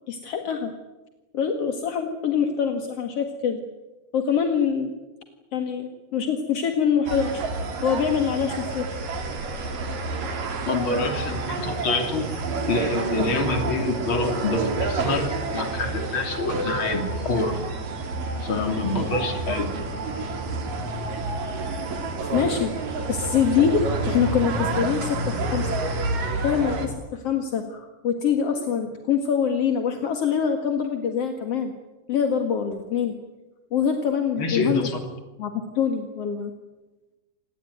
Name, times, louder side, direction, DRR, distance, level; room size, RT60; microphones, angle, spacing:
voice 1, 0.1-0.7 1.3-3.6 4.1-4.9 5.5-7.4 7.8-8.9 22.3-22.7 23.1-23.8 24.1-25.7 26.4-31.7 32.1-33.1 33.7-34.9 35.4-36.5, left 7 dB, 50° left, 5 dB, 2.1 m, -24 dB
sound 1, 7.1-26.9, right 3 dB, 55° right, 4.5 m, -29 dB
voice 2, 10.6-12.3 12.7-17.6 18.4-19.7 34.4-35.1, left 3 dB, 35° left, 6 dB, 3.2 m, -26 dB
27.0 x 20.0 x 9.4 m, 1.1 s
omnidirectional pair, 4.9 m